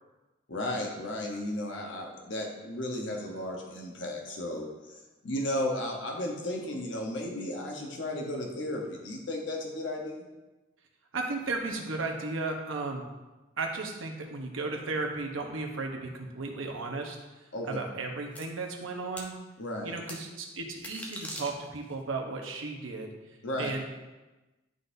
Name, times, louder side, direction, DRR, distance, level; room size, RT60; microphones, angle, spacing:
voice 1, 0.5-5.0 5.2-10.3 17.5-17.7 19.6-19.9 23.4-23.7, left 1 dB, 65° left, 0 dB, 1.0 m, -34 dB
voice 2, 11.1-13.1 13.6-17.2 17.7-19.4 19.8-23.1 23.6-23.9, right 3 dB, 85° right, 2 dB, 1.0 m, -34 dB
sound 1, 18.4-18.5 19.2-19.3 20.1-20.2 20.7-21.9, equal, 5° left, 0.6 m, -41 dB
11.0 x 3.9 x 2.7 m, 1.1 s
head